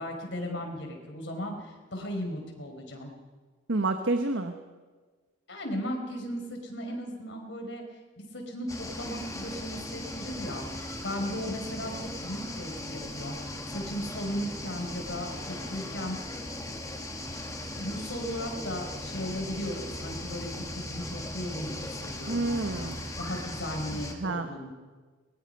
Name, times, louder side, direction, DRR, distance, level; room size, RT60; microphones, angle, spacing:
voice 1, 0.0-3.1 5.5-7.8 8.2-10.7 11.0-13.4 13.7-16.2 17.8-22.9 23.2-24.7, equal, 70° left, 3 dB, 4.9 m, -36 dB
voice 2, 3.7-4.5 22.3-23.0 23.9-24.5, right 2 dB, 80° right, 6 dB, 1.2 m, -29 dB
sound 1, 8.7-24.1, left 1 dB, 20° left, 2.4 m, -38 dB
22.0 x 21.5 x 5.6 m, 1.4 s
head